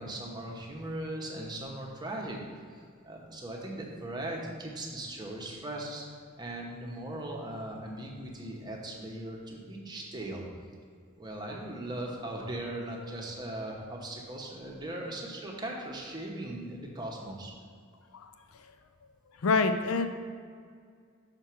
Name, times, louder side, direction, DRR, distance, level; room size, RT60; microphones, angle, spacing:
voice 1, 0.0-2.4 3.0-6.0 6.4-10.4 11.2-17.5, right 1 dB, 20° right, -1 dB, 0.9 m, -39 dB
voice 2, 19.4-20.1, left 4 dB, 90° left, 8 dB, 0.5 m, -25 dB
5.9 x 4.5 x 5.9 m, 2.1 s
head